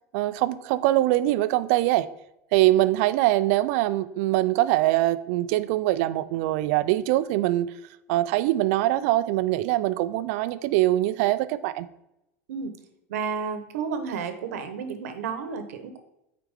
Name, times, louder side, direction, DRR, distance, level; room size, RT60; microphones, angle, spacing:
voice 1, 0.1-2.1 2.5-7.7 8.1-11.9, right 15 dB, 65° right, 14 dB, 0.5 m, -23 dB
voice 2, 13.1-16.0, right 6 dB, 85° right, 8 dB, 1.1 m, -31 dB
8.9 x 4.8 x 3.7 m, 0.87 s
supercardioid pair, 105°, 8 cm